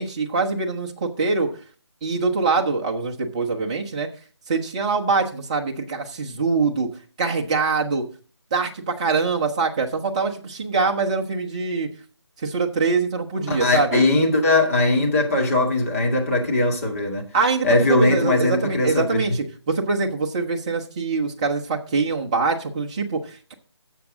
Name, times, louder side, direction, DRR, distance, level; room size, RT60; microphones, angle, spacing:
voice 1, 0.0-1.5 2.0-4.1 4.5-6.9 7.2-8.0 8.5-11.9 12.4-14.0 17.3-23.5, right 4 dB, 15° right, 0.9 m, -24 dB
voice 2, 13.5-17.3 17.6-19.2, left 2 dB, 30° left, 1.9 m, -20 dB
12.5 x 7.3 x 3.8 m
figure-of-eight pair, 165°, 14 cm